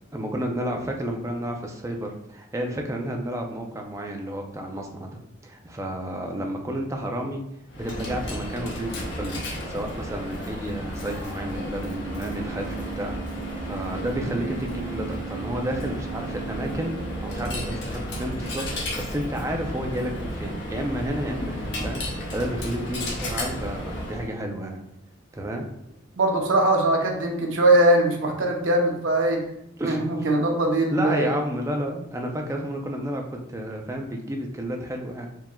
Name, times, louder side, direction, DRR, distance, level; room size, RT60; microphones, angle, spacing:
voice 1, 0.1-7.4 7.8-9.4 9.7-13.2 13.6-16.9 17.2-24.8 25.3-25.7 29.8-30.1 30.9-35.3, equal, 15° right, 2 dB, 0.5 m, -31 dB
Coin (dropping), 7.7-24.3, right 1 dB, 60° left, 1.0 m, -33 dB
voice 2, 26.2-29.5 29.8-31.4, right 1 dB, 80° right, 1 dB, 0.8 m, -21 dB
4.6 x 3.5 x 2.3 m, 0.77 s
head